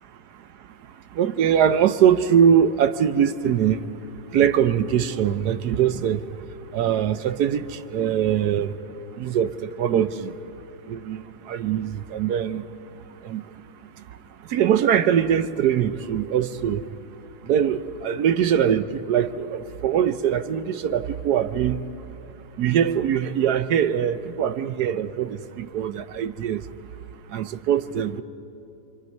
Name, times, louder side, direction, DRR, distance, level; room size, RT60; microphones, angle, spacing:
voice 1, 1.1-3.8 4.3-6.2 6.7-8.7 9.2-10.3 10.9-12.6 13.2-13.4 14.5-16.9 17.4-21.8 22.6-26.6 27.3-28.2, right 9 dB, 65° right, 1.1 m, -22 dB
28.5 x 25.0 x 5.4 m
omnidirectional pair, 2.1 m